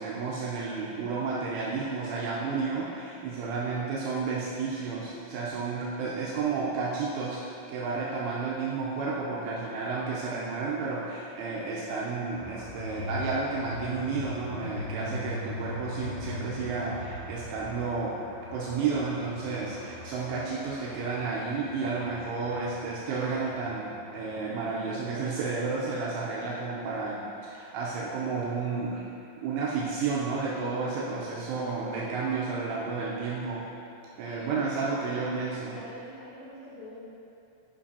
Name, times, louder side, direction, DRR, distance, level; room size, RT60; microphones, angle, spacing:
voice 1, 0.0-7.4 7.7-18.2 18.5-29.0 29.4-33.6 34.2-35.8, right 4 dB, 85° right, -6 dB, 3.0 m, -31 dB
sound 1, 12.3-26.2, left 2 dB, 60° left, 3.4 m, -41 dB
voice 2, 35.7-37.1, left 1 dB, 85° left, -9 dB, 2.2 m, -44 dB
11.5 x 5.3 x 2.8 m, 2.7 s
omnidirectional pair, 5.9 m